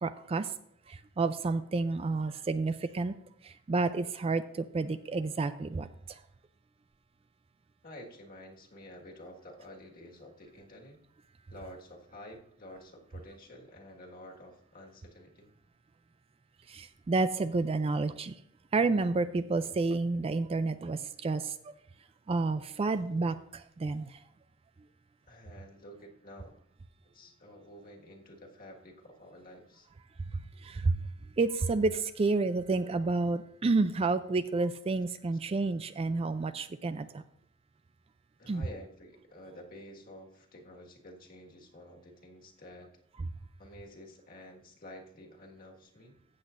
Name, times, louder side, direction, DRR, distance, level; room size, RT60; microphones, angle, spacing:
voice 1, 0.0-0.5 0.9-3.2 3.4-6.2 16.7-18.3 18.7-21.7 22.3-24.2 30.6-31.1 31.4-37.2 38.5-38.6, right 3 dB, 30° right, 0.3 m, -30 dB
voice 2, 7.8-11.0 11.5-15.5 25.3-26.5 27.1-29.9 38.4-42.9 43.6-46.1, left 1 dB, 45° left, 1.7 m, -50 dB
14.5 x 8.0 x 2.5 m
head